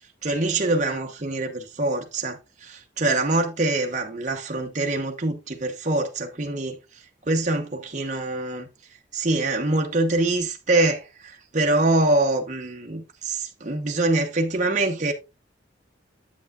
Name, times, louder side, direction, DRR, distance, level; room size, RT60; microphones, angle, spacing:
voice 1, 0.2-6.8 7.3-8.7 9.1-15.1, right 2 dB, 40° right, 1.0 m, -24 dB
8.4 x 8.0 x 2.4 m
head